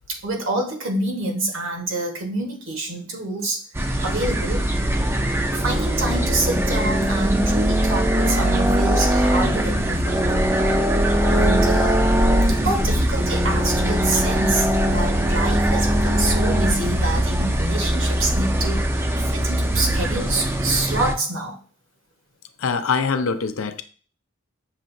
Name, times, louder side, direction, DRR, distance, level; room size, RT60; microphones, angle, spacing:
voice 1, 0.1-3.6 4.0-4.7 5.5-10.2 11.2-12.2 12.5-18.9 19.2-21.6, right 2 dB, 70° right, 1.2 m, -27 dB
sound 1, 3.7-21.1, equal, 10° right, 0.4 m, -21 dB
voice 2, 22.6-23.8, left 5 dB, 80° left, 0.5 m, -23 dB
6.6 x 2.8 x 2.6 m
head